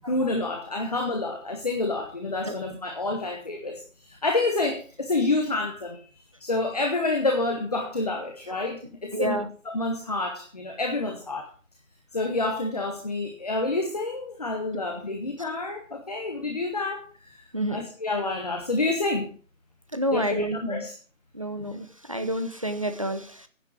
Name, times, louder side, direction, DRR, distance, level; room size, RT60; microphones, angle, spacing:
voice 1, 0.1-11.5 12.1-17.4 17.7-19.3 20.1-20.9, left 2 dB, 30° left, 4 dB, 1.2 m, -28 dB
voice 2, 9.1-9.5 15.4-15.5 17.5-17.8 19.9-20.9 21.3-23.5, equal, 25° right, 9 dB, 0.8 m, -29 dB
9.9 x 8.6 x 6.1 m, 0.40 s
figure-of-eight pair, 170°, 40 cm